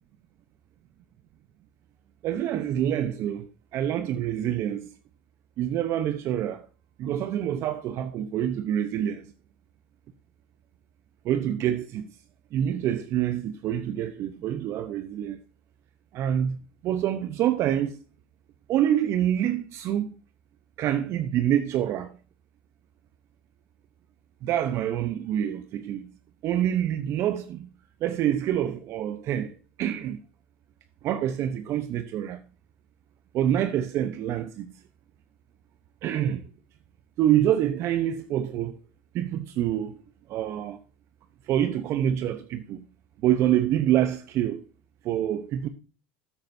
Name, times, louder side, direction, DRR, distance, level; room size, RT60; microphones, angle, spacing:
voice 1, 2.2-4.9 5.6-6.7 7.0-9.2 11.2-12.1 12.5-15.4 16.1-18.0 18.7-20.1 20.8-22.1 24.4-26.1 26.4-27.7 28.0-30.2 31.0-32.4 33.3-34.7 36.0-36.4 37.2-38.8 39.1-40.0 40.3-40.8 41.5-42.8 43.2-44.6 45.0-45.7, right 11 dB, 50° right, 0.8 m, -26 dB
12.5 x 8.9 x 2.7 m
hypercardioid pair, 95°, 6 cm